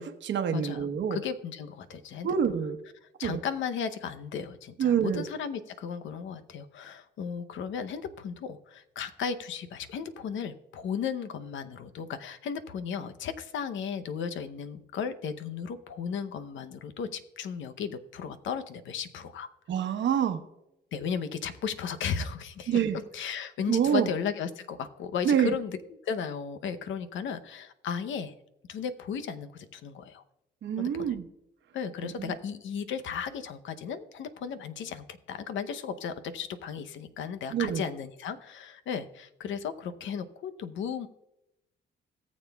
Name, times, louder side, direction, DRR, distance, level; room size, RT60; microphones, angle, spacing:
voice 1, 0.0-1.2 2.2-2.8 3.2-3.4 4.8-5.2 19.7-20.4 22.7-23.0 23.7-24.1 25.2-25.5 30.6-31.2 32.0-32.3 37.5-37.8, right 8 dB, 65° right, 6 dB, 1.1 m, -26 dB
voice 2, 0.5-2.3 3.0-19.5 20.9-22.8 23.1-25.8 26.0-28.3 28.7-30.2 30.8-31.1 31.7-41.1, left 7 dB, 75° left, 10 dB, 0.8 m, -35 dB
18.0 x 7.3 x 2.3 m, 0.87 s
cardioid pair, 90°, 20 cm